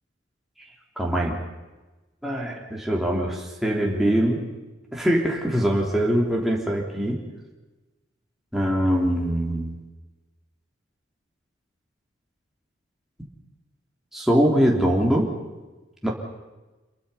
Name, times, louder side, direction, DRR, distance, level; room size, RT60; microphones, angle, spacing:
voice 1, 1.0-1.4 2.2-4.4 4.9-7.2 8.5-9.8 14.1-15.3 16.0-16.1, equal, ahead, -2 dB, 3.0 m, -23 dB
27.0 x 22.5 x 5.6 m, 1.1 s
head